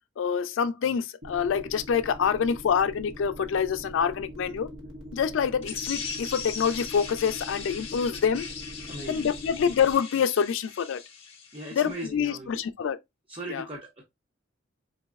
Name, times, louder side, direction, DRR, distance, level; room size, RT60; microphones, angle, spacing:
voice 1, 0.2-4.7 5.1-8.4 9.1-11.0 11.7-13.0 13.5-13.7, left 7 dB, 75° left, 0.4 m, -26 dB
sound 1, 1.2-9.9, equal, 80° right, 1.1 m, -42 dB
sound 2, 5.6-12.0, left 6 dB, 30° left, 0.8 m, -39 dB
voice 2, 8.8-9.3 11.5-12.6 13.3-14.0, right 1 dB, 30° right, 0.7 m, -38 dB
4.0 x 3.0 x 2.3 m
head